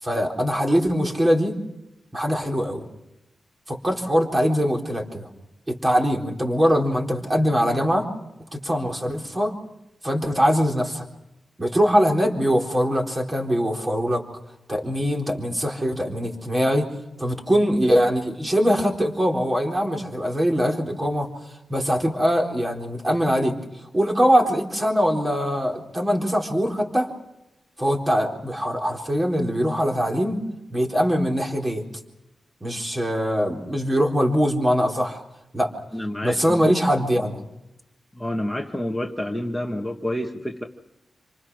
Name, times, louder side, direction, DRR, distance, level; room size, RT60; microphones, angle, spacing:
voice 1, 0.0-1.6 2.1-2.8 3.7-5.3 5.7-8.1 8.5-9.5 10.0-11.0 11.6-14.2 14.7-16.9 17.2-23.6 23.9-27.1 27.8-30.4 30.7-31.8 32.6-35.2 35.5-35.7 36.2-37.4, equal, 20° right, 1 dB, 4.0 m, -22 dB
voice 2, 35.9-36.7 37.2-37.3 38.1-40.6, left 1 dB, 5° left, 1 dB, 1.5 m, -29 dB
28.0 x 26.0 x 6.2 m, 0.90 s
wide cardioid pair, 145°, 0 cm